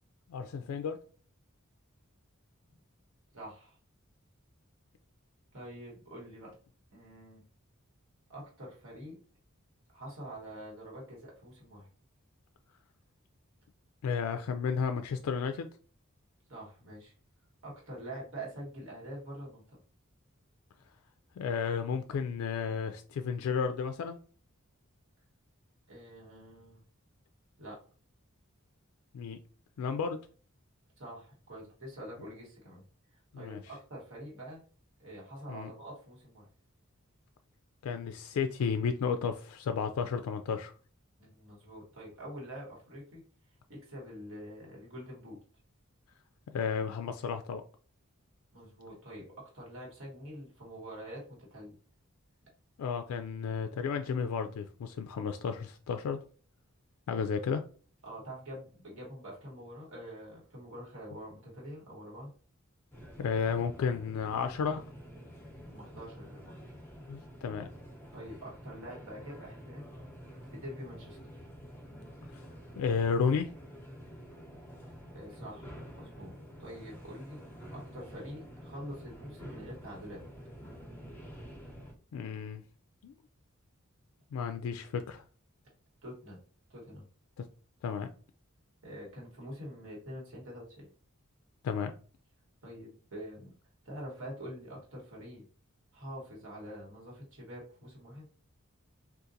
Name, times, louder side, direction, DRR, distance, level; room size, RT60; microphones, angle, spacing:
voice 1, 0.3-1.0 14.0-15.7 21.4-24.2 29.1-29.4 29.8-30.2 33.3-33.6 35.5-35.7 37.8-40.7 46.5-47.6 52.8-56.2 57.1-57.6 63.2-64.8 67.1-67.7 72.3-72.4 72.8-73.5 82.1-82.6 83.0-83.1 84.3-85.2 87.4-87.5 87.8-88.1 91.6-91.9, left 6 dB, 85° left, 0.3 m, -32 dB
voice 2, 3.3-3.8 5.5-6.6 6.9-7.4 8.3-9.2 9.9-11.9 16.5-17.1 17.6-19.8 25.9-26.8 27.6-27.8 31.0-32.8 33.1-34.6 35.0-36.5 41.2-43.2 43.7-45.4 48.5-51.8 58.0-62.3 65.6-66.7 68.1-69.8 70.4-71.5 75.1-77.4 77.7-80.2 86.0-86.4 86.7-87.1 88.8-90.9 92.6-93.5 93.8-95.4 95.9-98.3, equal, 65° right, 1.4 m, -46 dB
sound 1, 62.9-81.9, equal, 10° left, 0.7 m, -49 dB
3.8 x 2.4 x 2.6 m
head